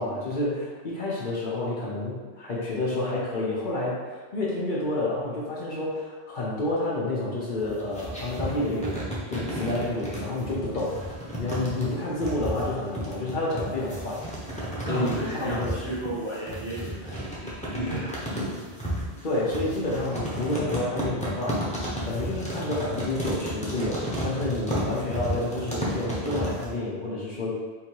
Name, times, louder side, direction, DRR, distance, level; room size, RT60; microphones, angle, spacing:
voice 1, 0.0-11.0 11.4-14.2 14.8-15.8 19.2-21.7 22.0-27.5, left 2 dB, 50° left, -6 dB, 0.9 m, -29 dB
sound 1, 7.6-26.7, equal, 5° left, 0.9 m, -33 dB
voice 2, 14.8-18.5, right 1 dB, 25° right, -8 dB, 1.0 m, -34 dB
3.8 x 2.7 x 4.5 m, 1.4 s
omnidirectional pair, 1.1 m